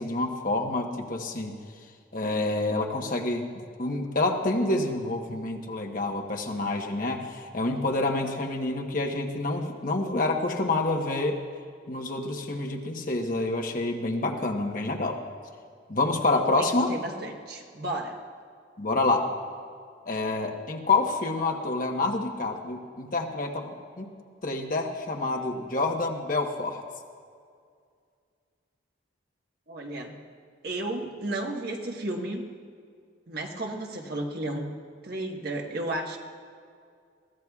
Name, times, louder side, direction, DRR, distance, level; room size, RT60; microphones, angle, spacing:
voice 1, 0.0-1.5 2.1-3.5 3.8-7.3 7.5-11.4 11.9-15.2 15.9-16.9 18.8-19.2 20.1-24.1 24.4-26.8, left 2 dB, 45° left, 2 dB, 1.1 m, -27 dB
voice 2, 16.3-18.2 29.7-30.1 30.6-32.4 33.3-34.7 35.0-36.2, right 1 dB, 50° right, 1 dB, 1.3 m, -33 dB
22.0 x 15.0 x 2.4 m, 2.2 s
head